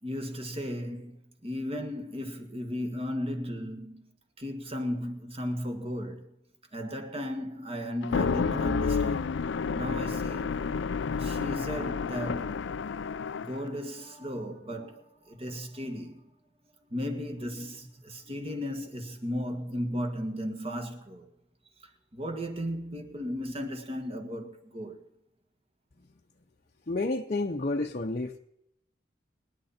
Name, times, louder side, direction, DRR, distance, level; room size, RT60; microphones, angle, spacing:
voice 1, 0.0-4.1 4.4-6.3 6.7-9.3 9.7-10.6 11.2-12.6 13.4-16.3 16.9-21.3 21.8-25.1, equal, 30° right, 2.0 m, -35 dB
sound 1, 8.0-13.7, left 5 dB, 70° left, 0.5 m, -30 dB
voice 2, 26.9-28.4, left 2 dB, 40° left, 0.8 m, -30 dB
25.5 x 9.9 x 4.4 m
head